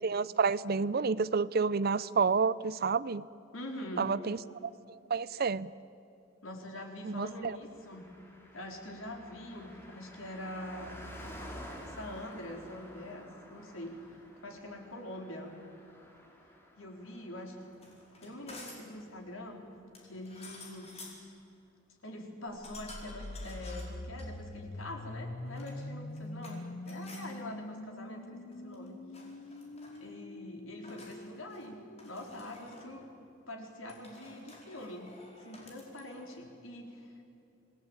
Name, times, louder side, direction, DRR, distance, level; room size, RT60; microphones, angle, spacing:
voice 1, 0.0-3.2 4.0-4.4 4.9-5.7 7.0-7.6, right 5 dB, 50° right, 18 dB, 0.6 m, -29 dB
voice 2, 3.5-4.1 6.4-8.1 8.5-11.0 11.7-14.0 14.4-15.6 16.8-17.6 18.2-19.6 20.0-21.4 22.0-29.0 30.0-33.1 33.5-35.1 35.4-37.2, left 1 dB, 85° left, 2 dB, 4.2 m, -44 dB
Car passing by, 7.7-19.5 19.8-19.9, equal, 10° left, 3.8 m, -51 dB
sound 1, 17.7-19.0 19.9-21.3 22.6-24.3 25.4-26.6 26.8-27.3 28.5-28.9 29.1-30.0 30.8-31.7 32.0-32.9 33.9-36.4, left 2 dB, 30° left, 4.8 m, -52 dB
sound 2, 22.6-32.5, left 1 dB, 55° left, 1.0 m, -44 dB
27.0 x 18.5 x 8.9 m, 2.7 s
head